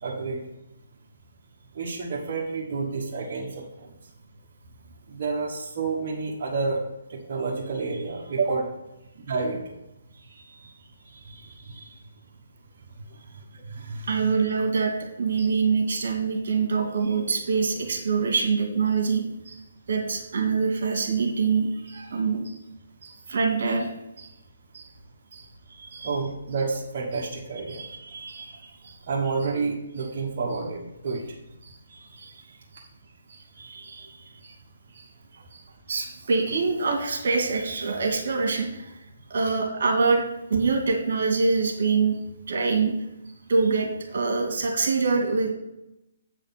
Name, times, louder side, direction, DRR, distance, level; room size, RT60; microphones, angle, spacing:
voice 1, 0.0-0.4 1.7-3.9 5.1-6.8 7.1-8.7 9.2-9.7 11.0-12.0 13.1-14.3 15.4-15.5 19.5-19.6 21.9-22.2 22.4-22.5 23.0-23.2 24.2-24.3 24.7-24.9 25.3-25.5 25.9-27.9 28.3-28.4 28.8-31.4 31.6-31.8 32.2-32.3 32.7-32.9 33.3-33.4 33.8-34.0 34.4-34.6 34.9-35.1 35.5-35.6 36.1-36.2 39.4-39.5, right 4 dB, 40° right, -4 dB, 1.4 m, -31 dB
voice 2, 10.2-10.7 14.0-19.2 19.9-22.4 23.3-23.9 25.7-26.1 27.7-28.8 31.9-32.5 33.6-34.5 34.9-35.0 35.3-35.4 35.9-40.2 40.5-42.2 42.5-42.9 43.5-45.5, right 4 dB, 60° right, 3 dB, 2.1 m, -25 dB
8.3 x 5.0 x 5.8 m, 0.91 s
hypercardioid pair, 160°, 0 cm